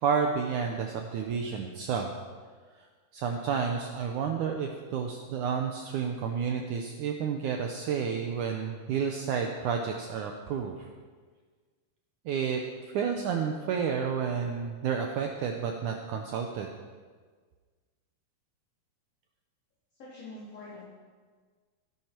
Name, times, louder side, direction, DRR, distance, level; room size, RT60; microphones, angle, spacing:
voice 1, 0.0-2.1 3.1-10.9 12.3-12.6 12.9-16.7, right 6 dB, 80° right, 3 dB, 1.8 m, -30 dB
voice 2, 20.0-20.9, left 2 dB, 40° left, -10 dB, 4.4 m, -44 dB
17.0 x 10.5 x 4.5 m, 1.5 s
omnidirectional pair, 4.6 m